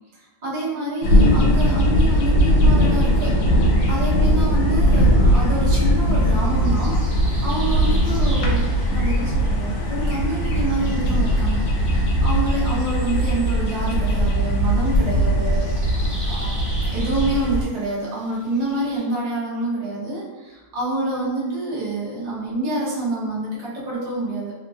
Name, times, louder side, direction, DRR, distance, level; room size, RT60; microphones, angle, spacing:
voice 1, 0.4-15.7 15.9-16.0 16.3-16.5 16.9-24.5, right 1 dB, 50° right, -7 dB, 0.5 m, -27 dB
sound 1, 1.0-17.6, equal, 80° left, 1.2 m, -19 dB
sound 2, 5.2-19.0, equal, 15° left, 1.0 m, -42 dB
3.0 x 2.5 x 2.3 m, 1.2 s
omnidirectional pair, 1.9 m